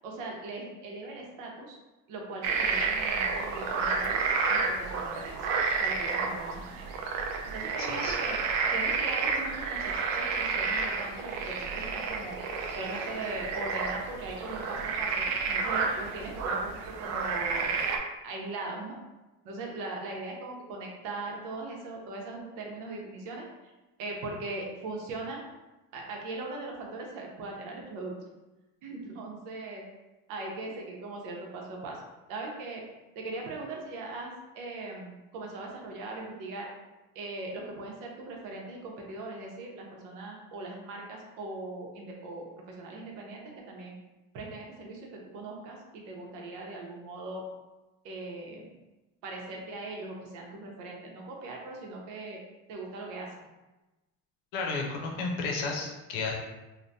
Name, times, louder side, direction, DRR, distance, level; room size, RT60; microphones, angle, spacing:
voice 1, 0.0-1.8 2.1-4.2 4.5-5.4 5.8-6.8 7.5-8.4 8.7-12.4 12.7-17.8 18.2-19.0 19.4-23.4 24.0-25.4 25.9-28.1 28.8-29.8 30.3-32.0 32.3-32.8 33.1-36.7 37.1-44.0 44.3-47.4 48.0-48.7 49.2-52.4 52.7-53.3, right 2 dB, 80° right, 0 dB, 0.8 m, -40 dB
sound 1, 2.4-18.0, right 4 dB, 60° right, 0.4 m, -30 dB
voice 2, 7.8-8.1 54.5-56.3, left 4 dB, 80° left, 0 dB, 0.7 m, -32 dB
3.3 x 2.2 x 2.6 m, 1.1 s
cardioid pair, 170°, 32 cm